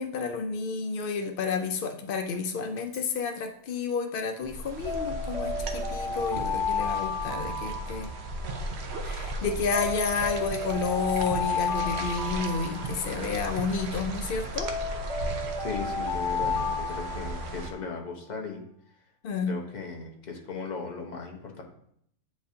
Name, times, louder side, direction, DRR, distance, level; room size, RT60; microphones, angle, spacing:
voice 1, 0.0-8.1 9.0-14.7 19.2-19.6, left 5 dB, 85° left, 5 dB, 0.4 m, -30 dB
Alarm, 2.8-3.1 4.9-8.6 9.7-13.5 14.6-17.8, left 4 dB, 55° left, 1.6 m, -32 dB
sound 1, 4.4-17.7, right 2 dB, 55° right, 0.8 m, -36 dB
voice 2, 15.6-18.6 19.4-21.6, left 4 dB, 35° left, 1 dB, 0.9 m, -37 dB
8.5 x 4.9 x 2.7 m, 0.70 s
omnidirectional pair, 1.6 m